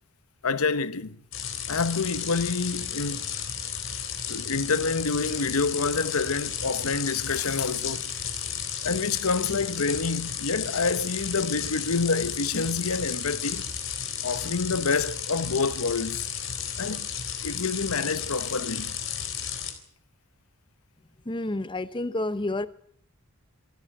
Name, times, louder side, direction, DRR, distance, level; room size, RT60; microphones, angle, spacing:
voice 1, 0.4-1.2 1.7-3.3 4.3-8.1 8.8-13.7 14.2-16.3 16.8-17.1 17.4-19.0, left 4 dB, 85° left, 1.1 m, -27 dB
sound 1, 1.3-19.7, left 8 dB, 60° left, 3.7 m, -33 dB
voice 2, 21.3-22.7, left 2 dB, 20° left, 0.8 m, -29 dB
26.5 x 13.0 x 9.0 m
head